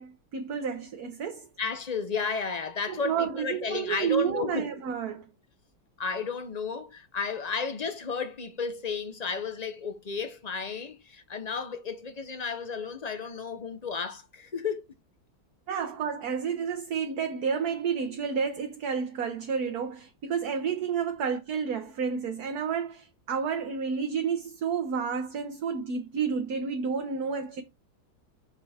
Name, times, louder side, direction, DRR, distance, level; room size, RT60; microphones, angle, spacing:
voice 1, 0.0-1.5 2.9-5.3 15.7-27.6, right 6 dB, 55° right, 1.4 m, -30 dB
voice 2, 1.6-4.7 6.0-14.9, left 5 dB, 50° left, 0.4 m, -33 dB
6.8 x 5.6 x 4.3 m
omnidirectional pair, 2.2 m